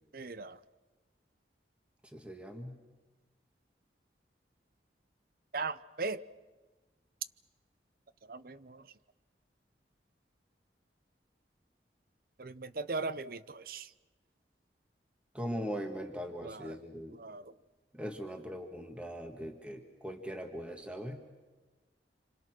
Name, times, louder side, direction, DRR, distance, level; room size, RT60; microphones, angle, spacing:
voice 1, 0.1-0.6 5.5-6.2 8.3-8.8 12.4-13.9 16.4-16.8 17.2-17.4, right 3 dB, 55° right, 15 dB, 0.7 m, -38 dB
voice 2, 2.1-2.8 15.3-17.2 17.9-21.2, equal, 5° right, 4 dB, 1.7 m, -40 dB
27.5 x 26.5 x 6.2 m, 1.3 s
head